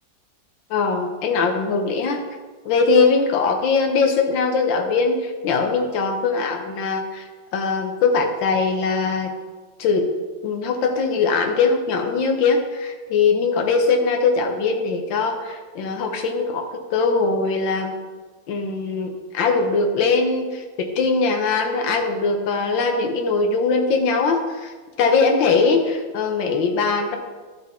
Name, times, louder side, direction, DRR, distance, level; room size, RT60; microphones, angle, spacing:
voice 1, 0.7-2.2 2.6-7.2 7.5-9.3 9.8-10.1 10.4-17.9 18.5-24.7 25.0-27.2, left 4 dB, 75° left, 4 dB, 1.7 m, -21 dB
12.5 x 5.0 x 4.2 m, 1.3 s
omnidirectional pair, 2.1 m